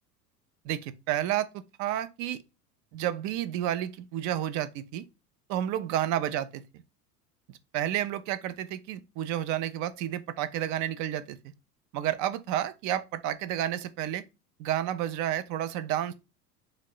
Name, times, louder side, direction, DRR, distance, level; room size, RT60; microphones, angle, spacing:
voice 1, 0.6-2.4 2.9-5.1 5.5-6.6 7.5-11.4 11.9-14.2 14.6-16.1, right 12 dB, 40° right, 0.5 m, -31 dB
3.2 x 2.7 x 3.8 m
hypercardioid pair, 80°, 47 cm